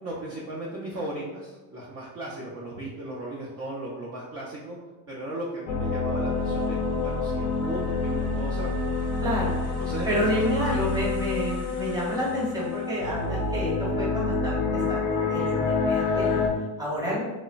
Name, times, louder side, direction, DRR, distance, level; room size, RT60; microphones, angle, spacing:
voice 1, 0.0-4.8 5.1-8.8 9.8-10.4, right 1 dB, 35° right, -5 dB, 0.5 m, -36 dB
sound 1, 5.7-16.5, left 4 dB, 45° left, 0.5 m, -27 dB
voice 2, 9.2-9.6 10.1-16.4 16.8-17.2, left 1 dB, 10° right, -5 dB, 0.9 m, -29 dB
2.9 x 2.1 x 2.4 m, 1.2 s
supercardioid pair, 105°, 40 cm